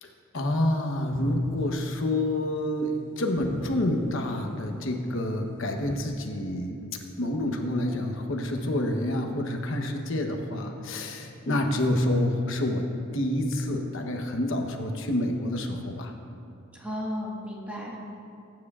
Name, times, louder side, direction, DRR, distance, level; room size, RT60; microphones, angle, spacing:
voice 1, 0.3-6.8 7.2-16.1, left 1 dB, 60° left, 3 dB, 1.0 m, -28 dB
sound 1, 1.1-1.9 3.4-4.2 5.8-6.0, left 1 dB, 40° left, 0.8 m, -38 dB
voice 2, 16.7-18.0, equal, 5° right, -3 dB, 1.5 m, -34 dB
22.0 x 9.3 x 2.4 m, 2.6 s
head